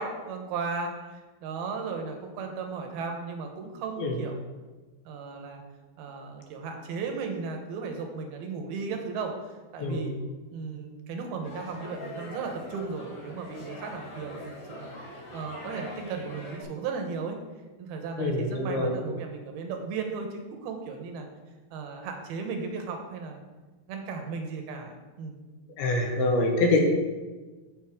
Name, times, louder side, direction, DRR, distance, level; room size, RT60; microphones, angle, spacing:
voice 1, 0.0-4.4 5.1-5.6 6.0-10.2 10.5-14.9 15.3-17.4 17.8-21.3 21.7-23.4 23.9-25.4, right 4 dB, 80° right, 4 dB, 2.9 m, -35 dB
sound 1, 11.4-16.6, left 1 dB, 55° left, 4.8 m, -42 dB
voice 2, 18.2-18.9 25.8-26.8, left 2 dB, 75° left, 1 dB, 3.1 m, -25 dB
13.5 x 5.4 x 3.6 m, 1.3 s
omnidirectional pair, 4.5 m